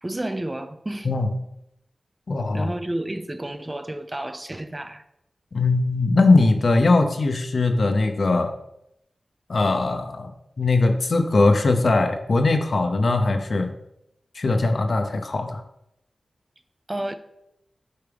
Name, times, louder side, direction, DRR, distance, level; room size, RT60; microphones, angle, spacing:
voice 1, 0.0-1.1 2.5-5.0 16.9-17.2, right 1 dB, 25° right, 0.5 m, -31 dB
voice 2, 2.3-2.7 5.5-8.5 9.5-10.3 10.6-13.7 14.3-15.6, left 3 dB, 65° left, 0.8 m, -20 dB
8.4 x 4.5 x 3.5 m
cardioid pair, 55°, 0 cm